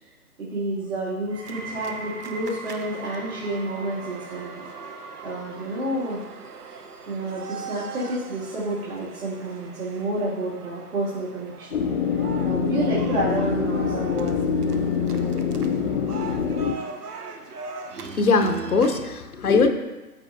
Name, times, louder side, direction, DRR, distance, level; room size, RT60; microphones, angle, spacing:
voice 1, 0.4-4.7 5.2-6.2 7.1-11.8 12.4-14.4, right 1 dB, 65° right, -9 dB, 2.4 m, -29 dB
sound 1, 1.3-12.4 12.7-13.3 14.0-14.1, right 3 dB, 50° right, 1.9 m, -44 dB
sound 2, 1.5-19.0, right 4 dB, 80° right, 0.9 m, -40 dB
sound 3, 11.7-16.7, left 6 dB, 50° left, 0.6 m, -25 dB
voice 2, 18.2-19.7, left 4 dB, 75° left, 6 dB, 1.0 m, -20 dB
13.0 x 4.4 x 2.6 m, 1.1 s
figure-of-eight pair, 135°, 45 cm